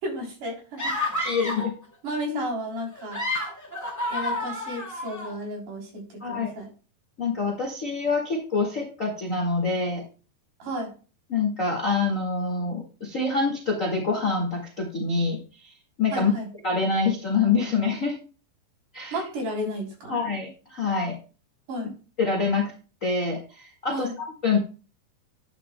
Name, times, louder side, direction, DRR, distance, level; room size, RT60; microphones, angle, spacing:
voice 1, 0.0-0.8 2.0-3.2 4.1-6.7 10.6-10.9 16.1-16.5 19.1-20.1 21.7-21.9 23.9-24.1, equal, 50° right, 0 dB, 4.8 m, -33 dB
sound 1, 0.8-1.7 2.9-5.3, left 1 dB, 25° left, 0.3 m, -30 dB
voice 2, 1.2-1.7 2.3-2.4 6.2-6.5 7.2-10.0 11.3-15.7 16.0-16.3 16.6-18.2 18.9-19.2 20.1-21.2 22.2-22.7 23.0-24.6, left 4 dB, 60° left, 0 dB, 0.8 m, -26 dB
11.0 x 10.5 x 2.2 m, 0.34 s
omnidirectional pair, 4.9 m